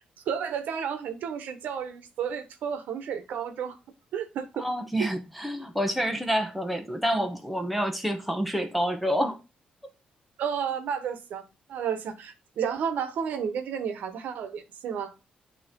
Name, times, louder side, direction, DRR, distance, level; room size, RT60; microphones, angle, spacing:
voice 1, 0.3-3.8 4.1-4.6 5.0-5.1 10.4-11.4 11.7-15.1, right 7 dB, 75° right, 1.1 m, -32 dB
voice 2, 4.6-9.4, equal, ahead, 1.0 m, -28 dB
8.9 x 3.1 x 3.7 m
cardioid pair, 130°, 3 cm